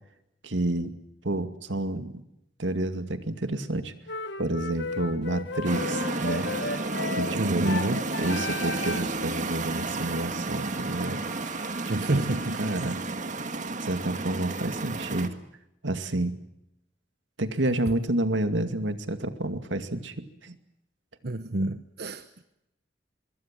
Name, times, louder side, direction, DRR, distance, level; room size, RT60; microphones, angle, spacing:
voice 1, 0.4-0.9 1.2-2.1 2.6-3.9 4.4-6.5 7.1-7.8 8.2-11.2 12.1-12.2 12.6-13.0 13.8-15.4 15.8-16.4 17.4-20.6, right 1 dB, 85° right, 9 dB, 2.3 m, -29 dB
sound 1, 4.1-9.2, left 4 dB, 65° left, 1.3 m, -34 dB
sound 2, 5.6-15.3, right 3 dB, 45° right, 1.8 m, -32 dB
Trumpet, 5.7-13.0, equal, ahead, 2.3 m, -48 dB
voice 2, 7.4-8.0 11.9-12.6 21.2-22.4, right 2 dB, 60° right, 10 dB, 1.1 m, -28 dB
25.0 x 23.0 x 7.6 m, 0.83 s
head